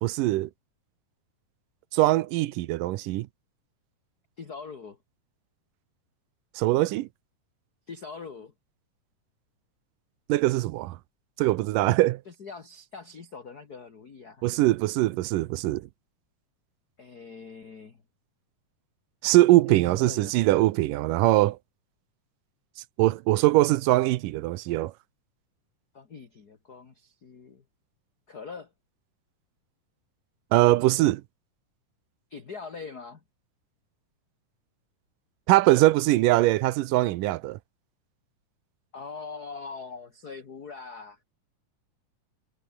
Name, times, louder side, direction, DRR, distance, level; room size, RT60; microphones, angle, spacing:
voice 1, 0.0-0.5 1.9-3.3 6.6-7.1 10.3-11.0 11.4-12.2 14.4-15.9 19.2-21.6 23.0-24.9 30.5-31.2 35.5-37.6, right 17 dB, 85° right, 2.4 m, -22 dB
voice 2, 4.4-5.0 7.9-8.5 12.3-14.4 17.0-18.0 19.7-20.4 25.9-27.6 28.3-28.7 32.3-33.2 38.9-41.2, left 5 dB, 35° left, 1.9 m, -42 dB
omnidirectional pair, 3.8 m